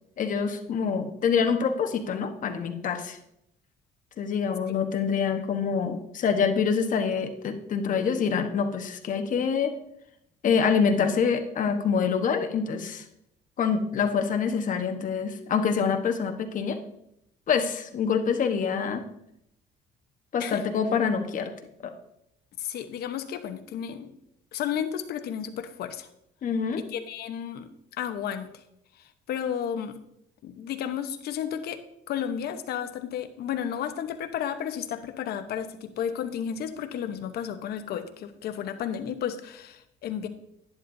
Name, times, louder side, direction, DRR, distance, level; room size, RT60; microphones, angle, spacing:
voice 1, 0.2-3.2 4.2-9.7 10.4-13.0 13.6-16.8 17.5-19.0 20.3-21.5 21.8-21.9 26.4-26.8, left 6 dB, 50° left, 6 dB, 1.2 m, -26 dB
voice 2, 22.6-24.1 24.5-26.1 26.8-27.7 28.0-28.5 29.3-30.0 30.4-31.8 32.1-40.3, left 9 dB, 70° left, 9 dB, 1.0 m, -32 dB
11.0 x 11.0 x 2.7 m, 0.79 s
cardioid pair, 110°, 17 cm